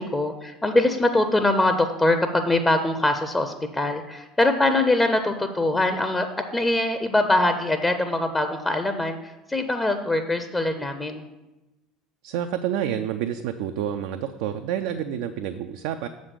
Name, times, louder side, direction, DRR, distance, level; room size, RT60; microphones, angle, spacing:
voice 1, 0.0-11.2, left 2 dB, 15° left, 7 dB, 0.6 m, -23 dB
voice 2, 12.2-16.1, right 10 dB, 60° right, 7 dB, 0.3 m, -28 dB
7.1 x 5.1 x 6.5 m, 1.0 s
figure-of-eight pair, 65°, 0 cm